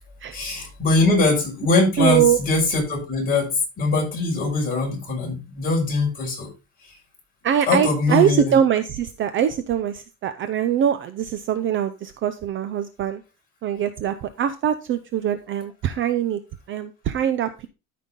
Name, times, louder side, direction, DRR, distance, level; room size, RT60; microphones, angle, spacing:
voice 1, 0.3-6.5 7.7-8.5, left 3 dB, 20° left, -3 dB, 5.7 m, -22 dB
voice 2, 2.0-2.4 7.4-13.2 13.6-16.4 16.7-17.7, right 9 dB, 35° right, 11 dB, 0.5 m, -22 dB
13.0 x 5.6 x 3.7 m, 0.29 s
cardioid pair, 170°, 38 cm